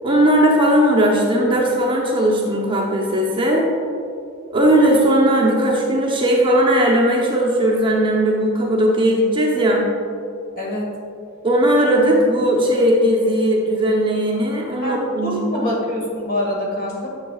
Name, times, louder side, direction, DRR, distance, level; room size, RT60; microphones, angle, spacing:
voice 1, 0.0-3.6 4.5-9.9 11.4-15.7, right 1 dB, 25° right, -3 dB, 0.9 m, -17 dB
voice 2, 10.6-10.9 14.8-17.1, left 1 dB, 45° left, -3 dB, 1.8 m, -25 dB
10.5 x 7.3 x 2.4 m, 2.5 s
head